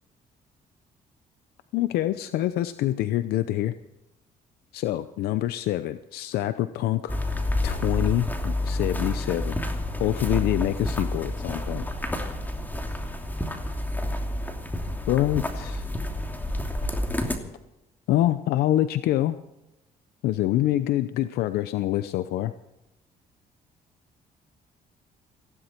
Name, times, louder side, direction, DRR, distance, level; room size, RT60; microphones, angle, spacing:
voice 1, 1.7-3.7 4.7-9.6 10.0-11.8 15.1-15.8 18.1-19.4 20.2-22.5, left 14 dB, 85° left, 12 dB, 0.7 m, -26 dB
sound 1, 7.1-17.4, left 1 dB, 10° left, 2.8 m, -29 dB
18.0 x 16.0 x 4.5 m, 0.92 s
cardioid pair, 90°, 16 cm